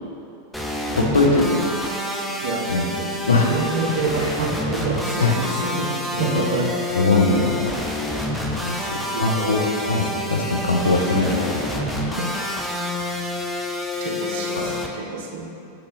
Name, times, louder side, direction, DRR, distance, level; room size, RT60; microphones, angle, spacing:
sound 1, 0.5-14.9, left 1 dB, ahead, 0.4 m, -28 dB
voice 1, 0.9-1.7 2.7-2.9 3.3-3.5 5.2-5.3 5.7-6.2 6.9-7.7 9.2-10.0 10.3-11.5 11.8-11.9 14.6-14.7, left 3 dB, 75° left, 0 dB, 0.5 m, -20 dB
voice 2, 2.4-3.2 3.5-6.7 9.1-9.7 12.2-12.3 14.0-15.7, right 3 dB, 55° right, 1 dB, 0.5 m, -28 dB
5.9 x 3.0 x 2.6 m, 2.6 s
figure-of-eight pair, 90°, 0 cm